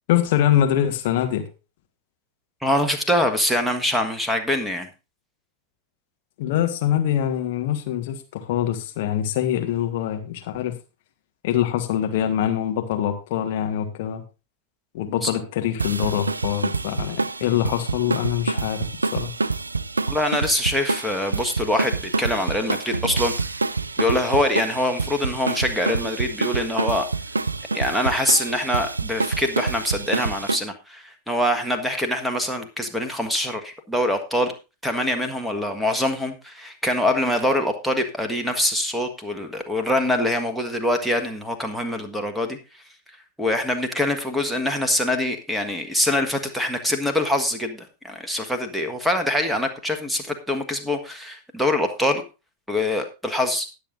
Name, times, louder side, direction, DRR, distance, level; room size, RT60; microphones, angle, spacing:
voice 1, 0.1-1.4 6.4-10.7 11.4-14.2 14.9-19.3, left 11 dB, 50° left, 5 dB, 1.5 m, -24 dB
voice 2, 2.6-4.9 15.2-15.3 20.1-23.3 24.0-27.1 27.7-34.5 34.8-42.6 43.4-52.2 52.7-53.7, left 1 dB, ahead, 5 dB, 1.5 m, -24 dB
sound 1, 15.8-30.6, right 3 dB, 80° right, 0.4 m, -27 dB
19.5 x 6.9 x 2.6 m, 0.30 s
figure-of-eight pair, 90°, 0 cm